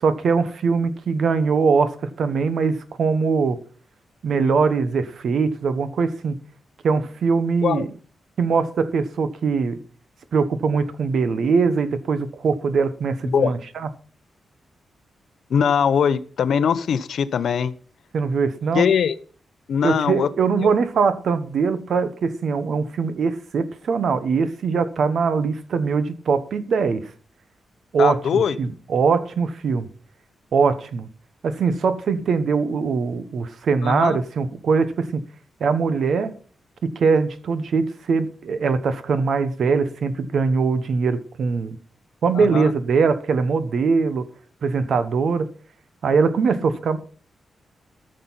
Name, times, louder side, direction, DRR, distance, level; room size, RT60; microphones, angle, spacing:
voice 1, 0.0-3.6 4.2-6.4 6.8-7.9 8.4-9.8 10.3-13.9 18.1-18.8 19.8-27.0 27.9-29.9 30.5-31.1 31.4-35.2 35.6-36.3 36.8-41.8 42.2-44.3 44.6-45.5 46.0-47.0, right 5 dB, 55° right, 1.0 m, -22 dB
voice 2, 15.5-17.7 18.7-19.2 19.7-20.3 20.6-20.7 28.0-28.6 33.8-34.2 42.3-42.7, left 7 dB, 65° left, 0.7 m, -21 dB
13.5 x 6.6 x 5.7 m
wide cardioid pair, 175°, 0 cm